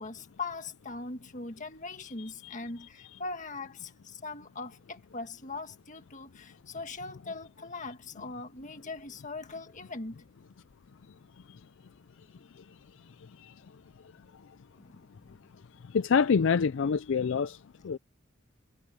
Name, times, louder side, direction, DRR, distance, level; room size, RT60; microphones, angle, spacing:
voice 1, 0.0-10.2 14.8-15.4, left 3 dB, 35° left, 1.9 m, -41 dB
voice 2, 15.9-17.6 17.8-18.0, left 6 dB, 65° left, 0.4 m, -25 dB
head